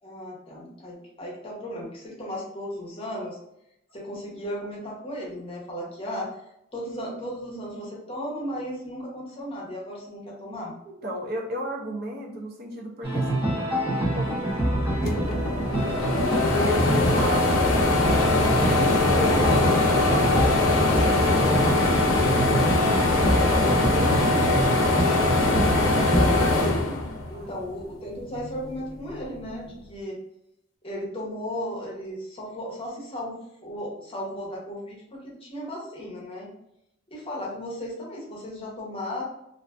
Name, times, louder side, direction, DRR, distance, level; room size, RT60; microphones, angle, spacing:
voice 1, 0.0-3.4 3.9-6.4 6.7-10.7 23.3-23.5 25.9-26.4 27.3-30.2 30.8-36.5 37.1-39.2, equal, 30° left, -3 dB, 0.7 m, -35 dB
voice 2, 10.9-13.6 13.9-14.7 15.0-15.7 16.5-17.6 18.0-22.3 22.7-25.1 27.2-27.5, right 1 dB, 50° right, 1 dB, 0.4 m, -35 dB
sound 1, 13.0-26.5, right 1 dB, 25° right, 0.9 m, -26 dB
sound 2, 14.7-14.8 15.0-27.6 28.1-29.2, left 2 dB, 75° left, 0.4 m, -22 dB
2.5 x 2.4 x 2.3 m, 0.78 s
head